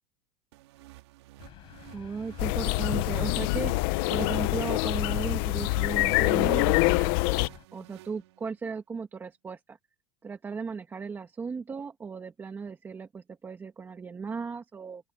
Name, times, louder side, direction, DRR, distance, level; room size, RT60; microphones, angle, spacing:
sound 1, 0.5-8.7, right 17 dB, 90° right, 3.7 m, -53 dB
sound 2, 1.4-7.7, left 14 dB, 40° left, 7.9 m, -50 dB
voice 1, 1.9-3.8 4.1-9.8 10.2-15.1, right 5 dB, 15° right, 1.8 m, -36 dB
sound 3, 2.4-7.5, left 22 dB, 60° left, 0.8 m, -25 dB
open air
supercardioid pair, 160°, 14 cm